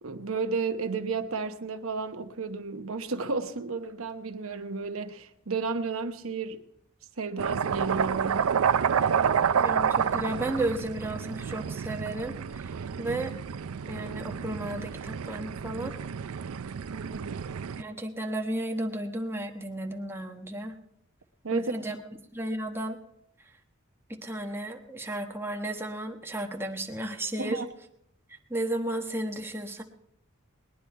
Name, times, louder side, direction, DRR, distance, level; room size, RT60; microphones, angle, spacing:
voice 1, 0.0-6.6 7.2-8.5 16.9-17.4 21.4-21.9 27.4-27.7, right 4 dB, 70° right, 1.0 m, -33 dB
sound 1, 7.4-17.8, right 7 dB, 85° right, 0.5 m, -29 dB
voice 2, 9.6-12.7 13.0-13.3 13.9-15.9 17.8-20.7 21.5-22.0 22.3-23.0 24.1-27.6 28.5-29.8, right 1 dB, 10° right, 1.2 m, -33 dB
20.5 x 10.0 x 4.6 m
head